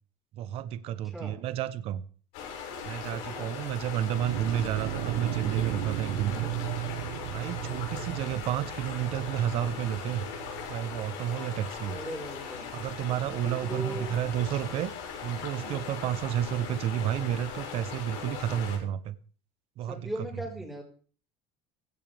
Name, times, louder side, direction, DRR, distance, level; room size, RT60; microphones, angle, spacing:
voice 1, 0.3-2.0 2.8-6.5 7.3-10.3 10.7-12.0 12.7-14.9 15.2-19.1 19.8-20.1, right 11 dB, 40° right, 14 dB, 0.8 m, -31 dB
sound 1, 2.3-18.8, left 6 dB, 70° left, 6.9 m, -39 dB
voice 2, 3.1-3.5 7.6-8.0 11.9-12.7 13.6-14.1 19.9-20.8, equal, ahead, -1 dB, 4.6 m, -39 dB
sound 2, 4.0-11.1, right 19 dB, 85° right, 0.6 m, -36 dB
16.5 x 15.5 x 3.4 m, 0.41 s
cardioid pair, 170°, 15 cm